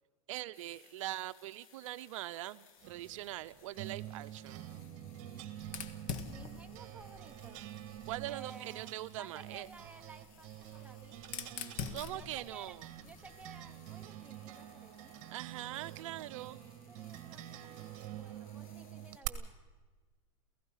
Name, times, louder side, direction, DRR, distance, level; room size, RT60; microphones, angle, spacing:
voice 1, 0.3-4.7 8.1-9.7 11.9-12.9 15.3-16.6, right 15 dB, 65° right, 12 dB, 0.6 m, -42 dB
sound 1, 0.5-19.2, left 7 dB, 75° left, 3.0 m, -64 dB
sound 2, 2.8-19.3, right 13 dB, 45° right, 1.6 m, -47 dB
Fire, 5.6-8.4 9.5-13.7, left 6 dB, 45° left, 1.7 m, -46 dB
voice 2, 6.3-7.7 8.3-8.9 9.2-11.2 12.1-12.8 13.0-15.2 16.9-17.9 18.2-19.5, right 4 dB, 5° right, 4 dB, 1.0 m, -55 dB
28.5 x 16.0 x 5.7 m, 1.4 s
supercardioid pair, 130°, 18 cm